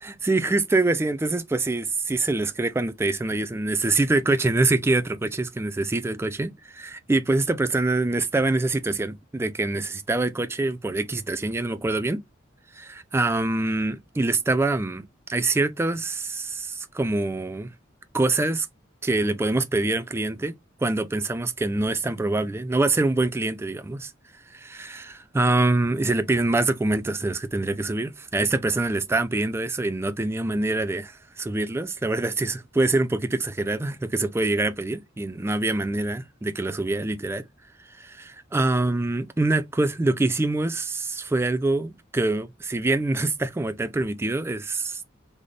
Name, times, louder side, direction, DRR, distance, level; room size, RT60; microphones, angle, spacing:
voice 1, 0.0-12.2 12.8-17.7 18.1-18.7 19.0-20.5 20.8-24.1 24.5-37.4 38.0-45.0, right 2 dB, 15° right, 0.3 m, -25 dB
4.0 x 2.0 x 3.2 m
head